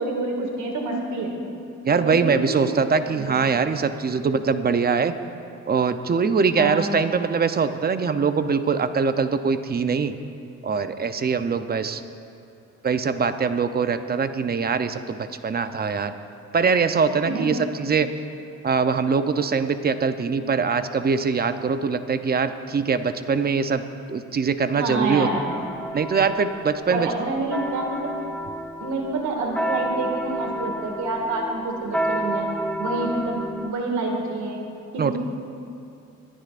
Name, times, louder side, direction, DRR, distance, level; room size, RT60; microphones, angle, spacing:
voice 1, 0.0-1.3 1.9-3.4 6.6-6.9 17.2-17.4 24.8-25.4 26.9-28.1 28.8-32.5 32.8-34.7 34.9-35.2, right 2 dB, 70° right, 1 dB, 2.1 m, -27 dB
voice 2, 1.8-5.1 5.7-10.1 10.6-12.0 12.8-16.1 16.5-18.1 18.6-23.8 24.1-25.3 25.9-27.1 35.0-35.2, right 5 dB, 30° right, 10 dB, 0.7 m, -22 dB
sound 1, 25.2-33.7, right 1 dB, 5° left, 0.9 m, -30 dB
26.0 x 10.0 x 2.5 m, 2.6 s
cardioid pair, 90°, 30 cm